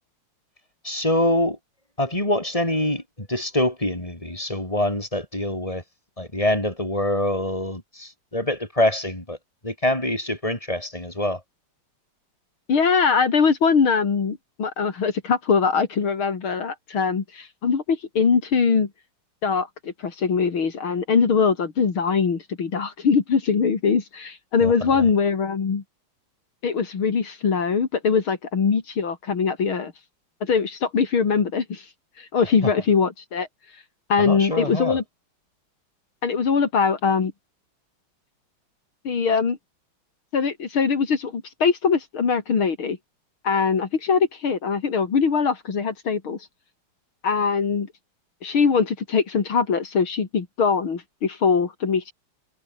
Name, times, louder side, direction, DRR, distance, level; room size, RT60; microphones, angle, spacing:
voice 1, 0.8-1.6 2.0-5.8 6.2-9.4 9.6-11.4 24.6-25.1 34.2-35.0, left 1 dB, 15° left, 6.9 m, -25 dB
voice 2, 12.7-18.9 19.4-25.8 26.6-29.9 30.4-31.9 32.2-33.5 34.1-35.0 36.2-37.3 39.1-39.6 40.3-43.0 43.4-46.4 47.2-47.9 48.4-52.1, left 5 dB, 80° left, 3.6 m, -22 dB
omnidirectional pair, 2.3 m